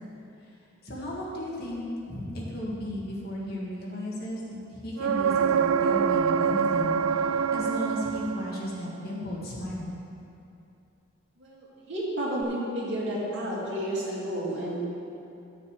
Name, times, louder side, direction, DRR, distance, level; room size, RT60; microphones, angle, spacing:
voice 1, 0.8-9.9, left 1 dB, 50° left, -5 dB, 1.8 m, -35 dB
sound 1, 5.0-8.7 12.4-12.5, right 7 dB, 80° right, 0.3 m, -25 dB
voice 2, 11.4-14.8, right 1 dB, 60° right, -6 dB, 2.4 m, -31 dB
10.0 x 6.9 x 4.8 m, 2.7 s
head